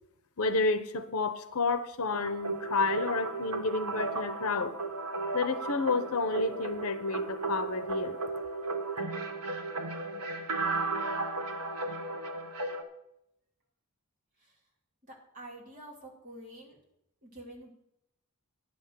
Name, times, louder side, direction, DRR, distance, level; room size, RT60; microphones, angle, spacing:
voice 1, 0.4-4.8 5.3-8.2, left 3 dB, 80° left, 11 dB, 0.9 m, -30 dB
sound 1, 2.1-12.8, right 3 dB, 85° right, 1.2 m, -35 dB
voice 2, 15.1-16.8 17.2-17.7, right 1 dB, 35° right, -2 dB, 2.7 m, -47 dB
10.0 x 6.3 x 7.6 m, 0.79 s
head